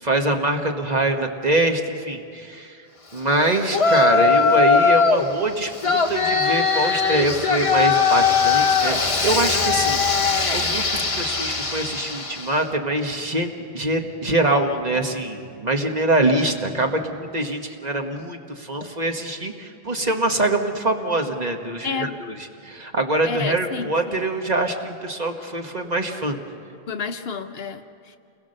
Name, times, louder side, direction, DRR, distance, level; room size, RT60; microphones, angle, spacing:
voice 1, 0.0-2.8 3.1-10.0 10.5-22.3 22.6-26.4, right 2 dB, 40° right, 3 dB, 1.5 m, -24 dB
Yell, 3.7-5.3 5.8-12.5, left 5 dB, 30° left, 1.1 m, -20 dB
voice 2, 21.8-22.2 23.2-24.2 26.9-28.2, left 5 dB, 65° left, 7 dB, 1.1 m, -30 dB
29.0 x 21.0 x 6.6 m, 2.4 s
omnidirectional pair, 1.1 m